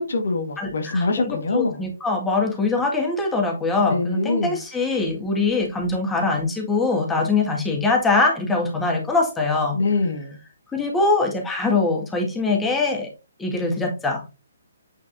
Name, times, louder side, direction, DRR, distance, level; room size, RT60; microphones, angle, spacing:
voice 1, 0.0-1.8 3.9-4.6 9.7-10.4, left 3 dB, 60° left, 1.4 m, -24 dB
voice 2, 0.6-9.8 10.7-13.1 13.4-14.2, left 3 dB, 10° left, 1.8 m, -23 dB
8.8 x 4.7 x 2.6 m
figure-of-eight pair, 135°, 0 cm